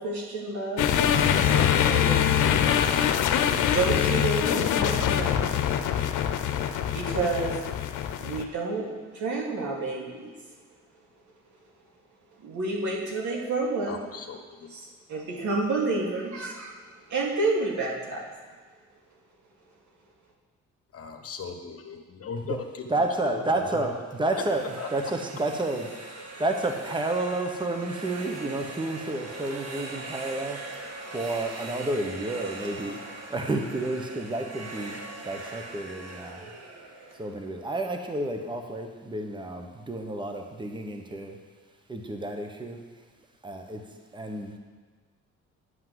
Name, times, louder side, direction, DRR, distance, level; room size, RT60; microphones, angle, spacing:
voice 1, 0.0-2.4 3.6-5.5 6.9-7.6 8.2-10.3 12.4-14.0 14.7-16.7 17.1-18.2, right 3 dB, 70° right, -3 dB, 2.5 m, -30 dB
sound 1, 0.8-8.4, left 9 dB, 90° left, 0.7 m, -24 dB
voice 2, 13.9-14.4 20.9-22.6 23.2-23.7 24.8-24.9, left 5 dB, 50° left, 5 dB, 1.2 m, -38 dB
voice 3, 22.9-25.9 26.2-30.8 31.1-36.5 37.1-41.4 41.9-42.8 43.4-43.8 44.1-44.6, right 2 dB, 15° right, 4 dB, 1.1 m, -31 dB
sound 2, 24.1-38.0, right 2 dB, 55° right, 1.5 m, -41 dB
9.7 x 5.8 x 7.7 m, 1.4 s
cardioid pair, 90°, 30 cm